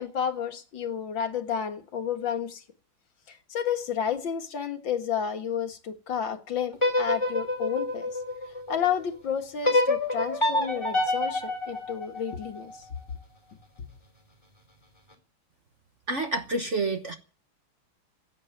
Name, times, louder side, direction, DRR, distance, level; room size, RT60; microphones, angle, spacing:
voice 1, 0.0-2.6 3.3-8.1 8.7-12.7, left 8 dB, 65° left, 2.3 m, -31 dB
sound 1, 6.7-8.9 9.6-12.8, left 2 dB, 15° left, 3.8 m, -27 dB
voice 2, 16.1-17.2, right 3 dB, 40° right, 1.2 m, -28 dB
16.0 x 9.2 x 9.1 m
omnidirectional pair, 2.2 m